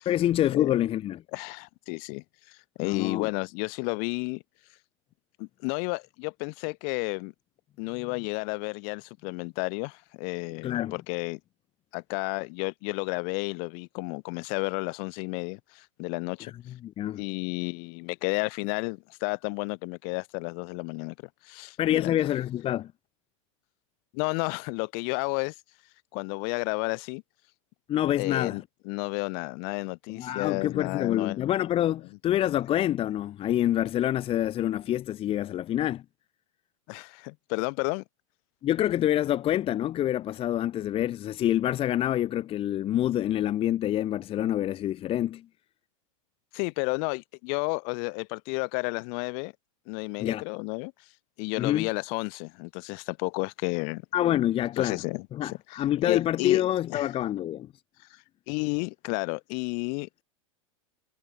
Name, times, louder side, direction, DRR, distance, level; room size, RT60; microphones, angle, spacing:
voice 1, 0.0-1.2 2.8-3.3 10.6-11.0 16.4-16.5 16.8-17.2 21.8-22.9 27.9-28.6 30.1-36.0 38.6-45.5 50.2-50.4 51.6-51.9 54.1-55.0 55.3-57.7, left 12 dB, 35° left, 1.2 m, -26 dB
voice 2, 1.3-4.4 5.4-7.3 7.8-11.4 11.9-16.5 17.2-21.1 21.4-22.2 24.1-25.5 26.1-27.2 28.2-31.4 36.9-38.0 46.5-49.5 49.9-50.9 51.4-54.0 54.8-55.6 56.0-56.6 56.9-57.1 58.5-60.2, left 40 dB or more, 55° left, 2.8 m, -32 dB
hypercardioid pair, 110°, 17 cm